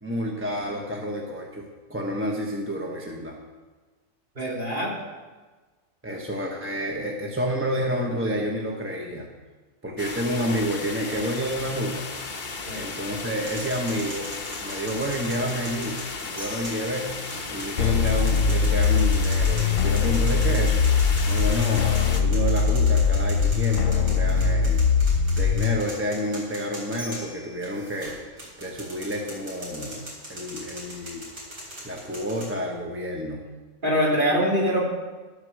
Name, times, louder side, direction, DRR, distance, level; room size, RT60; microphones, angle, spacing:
voice 1, 0.0-3.4 6.0-9.3 9.8-12.1 12.7-14.3 14.6-17.2 17.5-20.8 21.2-24.8 25.4-28.1 28.6-30.0 30.3-31.3 31.8-33.4, equal, 10° right, -1 dB, 1.1 m, -29 dB
voice 2, 4.3-4.9 12.7-12.9 33.8-34.9, equal, 40° right, -5 dB, 3.0 m, -23 dB
sound 1, 10.0-22.2, left 4 dB, 40° left, 1.0 m, -35 dB
sound 2, 13.4-32.5, equal, 85° right, 4.5 m, -41 dB
sound 3, 17.8-25.8, left 6 dB, 80° left, 1.2 m, -21 dB
11.5 x 8.1 x 6.5 m, 1.3 s
omnidirectional pair, 1.4 m